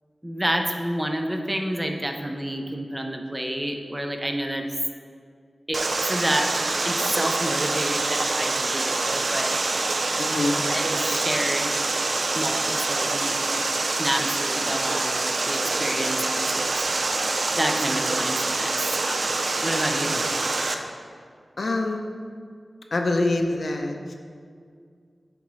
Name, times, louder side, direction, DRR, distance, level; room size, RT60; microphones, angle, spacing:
voice 1, 0.2-4.6 5.7-5.8 6.1-6.5 6.8-9.6 10.7-11.7 12.3-13.3 14.0-16.8 17.5-19.2 19.6-20.2, right 1 dB, 15° right, 3 dB, 0.5 m, -29 dB
Water, 5.7-20.7, right 3 dB, 70° right, 0.4 m, -25 dB
voice 2, 10.2-10.7 20.1-20.2 21.6-22.0 22.9-24.1, left 2 dB, 70° left, 3 dB, 0.5 m, -25 dB
9.4 x 3.6 x 3.1 m, 2.2 s
wide cardioid pair, 90°, 0 cm